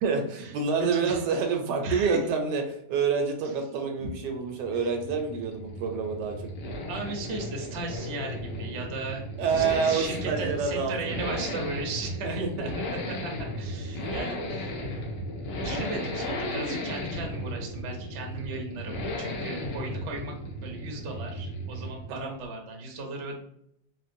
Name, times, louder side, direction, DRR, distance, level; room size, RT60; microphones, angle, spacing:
voice 1, 0.0-2.6 2.9-6.5 9.4-11.3 12.2-12.7 14.0-14.1 22.1-22.3, right 5 dB, 80° right, 4 dB, 1.2 m, -28 dB
voice 2, 0.8-1.2 1.8-2.2 4.7-4.9 6.9-12.8 13.2-13.3 13.6-14.7 15.6-20.3 20.6-23.4, right 2 dB, 60° right, 0 dB, 0.7 m, -36 dB
Accelerating revving vroom, 4.0-22.2 22.4-22.5, left 1 dB, 75° left, 1.3 m, -35 dB
3.6 x 2.1 x 2.5 m, 0.73 s
omnidirectional pair, 1.9 m